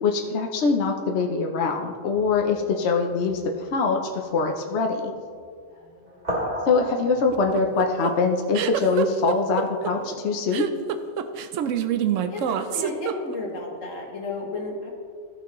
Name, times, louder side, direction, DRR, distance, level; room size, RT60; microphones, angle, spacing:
voice 1, 0.0-5.1 6.6-10.7, left 4 dB, 65° left, 2 dB, 0.9 m, -23 dB
sound 1, 1.8-2.6 3.1-3.4 4.2-4.4 6.1-7.4, equal, 45° right, 2.9 m, -32 dB
voice 2, 5.7-6.2 12.3-14.9, left 3 dB, 85° left, -1 dB, 1.9 m, -33 dB
sound 2, 7.3-13.6, right 9 dB, 80° right, 0.9 m, -26 dB
15.0 x 5.8 x 3.0 m, 2.1 s
omnidirectional pair, 1.3 m